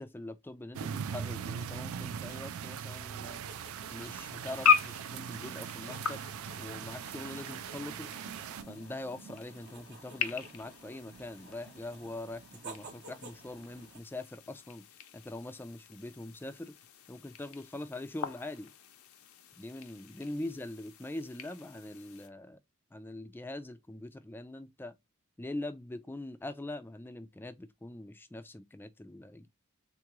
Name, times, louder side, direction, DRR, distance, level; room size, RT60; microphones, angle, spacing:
voice 1, 0.0-3.4 3.9-6.2 6.6-8.1 8.7-14.8 15.1-16.7 17.1-18.7 19.6-22.6 22.9-24.9 25.4-29.5, left 2 dB, 10° left, 0.3 m, -43 dB
sound 1, 0.7-8.6, right 8 dB, 70° right, 0.3 m, -40 dB
sound 2, 3.1-14.0, right 4 dB, 50° right, 0.7 m, -51 dB
sound 3, 3.5-22.3, left 6 dB, 75° left, 0.5 m, -38 dB
3.6 x 2.3 x 3.0 m
head